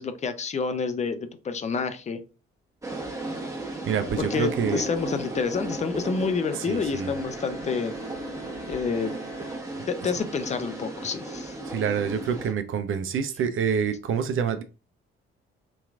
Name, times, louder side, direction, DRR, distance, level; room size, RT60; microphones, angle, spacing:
voice 1, 0.0-2.2 4.2-7.9 8.7-9.2 9.9-11.5, left 5 dB, 25° left, 9 dB, 0.5 m, -28 dB
sound 1, 2.8-12.5, right 2 dB, 10° right, 1.0 m, -35 dB
voice 2, 3.9-4.8 6.7-7.1 11.7-14.6, right 7 dB, 45° right, 9 dB, 0.5 m, -27 dB
Bowed string instrument, 6.3-10.3, right 1 dB, 80° left, 1.5 m, -46 dB
3.7 x 2.8 x 2.4 m, 0.33 s
figure-of-eight pair, 40°, 30 cm